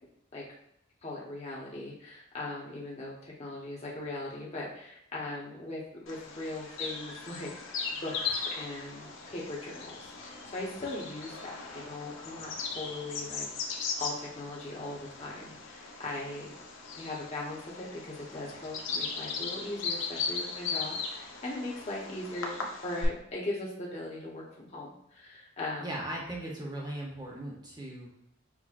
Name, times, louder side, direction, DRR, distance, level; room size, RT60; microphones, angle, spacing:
voice 1, 1.0-12.5 12.7-13.5 14.0-16.5 16.9-25.8, left 2 dB, 30° left, -5 dB, 0.9 m, -39 dB
Bird vocalization bird call bird song, 6.1-23.1, left 5 dB, 75° left, 0.6 m, -38 dB
voice 2, 25.8-28.2, right 1 dB, 20° right, -2 dB, 0.7 m, -38 dB
6.0 x 2.1 x 2.4 m, 0.77 s
head